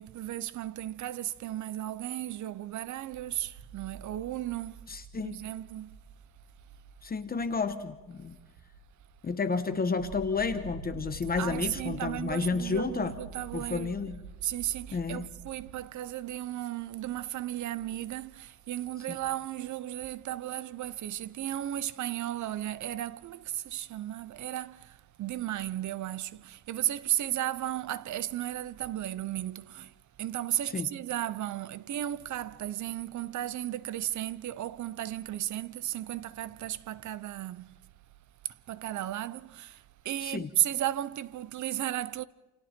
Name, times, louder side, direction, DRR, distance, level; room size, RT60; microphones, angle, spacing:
voice 1, 0.0-4.8 5.2-6.0 11.4-13.9 14.4-29.9 30.2-37.7 38.7-42.2, right 13 dB, 50° right, 0.7 m, -34 dB
sound 1, 3.1-15.8, right 4 dB, 90° right, 2.3 m, -47 dB
voice 2, 4.9-5.4 7.0-8.4 9.2-13.2 13.5-14.2 14.9-15.3 19.1-19.2 30.7-30.9 40.2-40.5, left 4 dB, 25° left, 1.0 m, -31 dB
28.5 x 27.0 x 4.4 m
cardioid pair, 180°, 37 cm